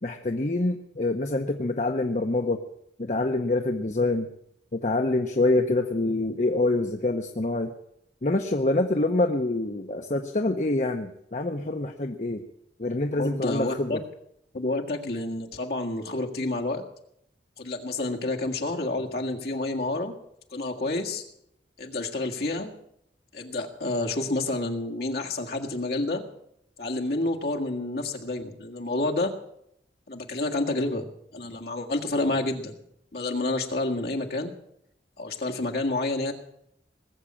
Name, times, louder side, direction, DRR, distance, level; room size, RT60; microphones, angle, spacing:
voice 1, 0.0-2.6 3.0-4.3 4.7-7.7 8.2-12.4 12.8-14.0, left 2 dB, 40° left, 5 dB, 0.8 m, -26 dB
voice 2, 13.2-14.0 14.5-16.8 17.6-20.1 20.5-21.2 21.8-22.7 23.3-26.2 26.8-29.3 30.1-31.1 31.3-32.7 33.1-34.5 35.2-36.3, left 2 dB, 55° left, 1 dB, 1.8 m, -29 dB
19.5 x 7.4 x 8.6 m, 0.76 s
head